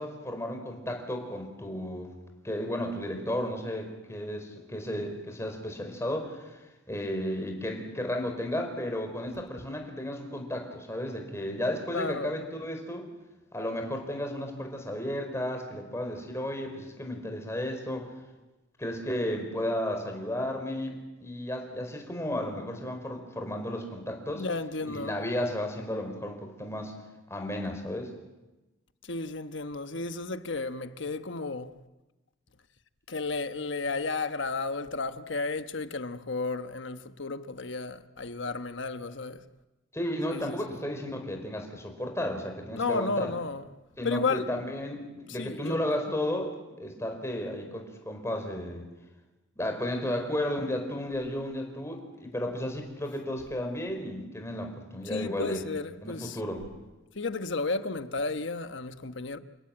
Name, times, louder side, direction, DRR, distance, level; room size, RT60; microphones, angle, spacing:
voice 1, 0.0-2.1 2.4-6.6 6.9-13.1 13.5-18.1 18.8-24.4 24.8-26.9 27.3-28.1 39.9-43.3 44.0-48.9 49.6-55.6 56.0-56.6, left 1 dB, 15° left, 4.7 m, -33 dB
voice 2, 11.9-12.3 24.3-25.1 29.0-31.8 33.1-39.4 40.3-40.8 42.7-43.7 44.0-44.5 45.3-45.8 55.0-56.4 57.1-59.4, left 3 dB, 65° left, 1.2 m, -33 dB
29.5 x 17.5 x 9.0 m
head